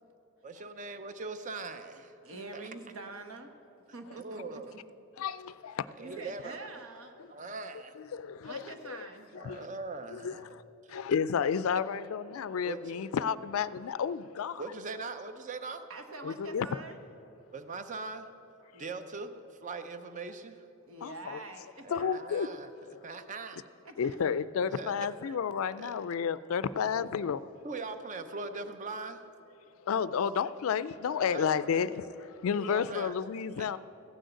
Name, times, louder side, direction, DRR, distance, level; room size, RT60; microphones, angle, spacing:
voice 1, 0.4-2.1 2.5-2.8 4.1-4.7 5.9-7.0 7.3-8.0 9.3-10.5 10.9-11.0 12.6-13.1 14.6-15.8 17.5-18.3 18.8-20.7 21.8-23.6 24.7-24.9 25.2-25.4 25.7-26.0 26.9-27.0 27.6-29.3 30.9-31.9 32.5-33.2 33.6-33.8, right 3 dB, 35° right, 0.6 m, -41 dB
voice 2, 2.2-3.5 3.9-4.6 6.0-7.1 8.4-9.3 15.9-17.0 18.7-19.1 20.9-22.0 23.8-24.4 28.1-28.7, right 2 dB, 70° right, 1.1 m, -46 dB
voice 3, 5.2-5.9 7.2-7.3 8.0-9.1 9.3-9.7 10.1-10.6 10.9-14.6 16.2-16.8 21.0-21.4 21.9-22.5 22.9-23.0 24.0-27.4 29.8-32.0 32.4-33.8, left 7 dB, 70° left, 0.4 m, -31 dB
15.0 x 6.3 x 7.9 m
head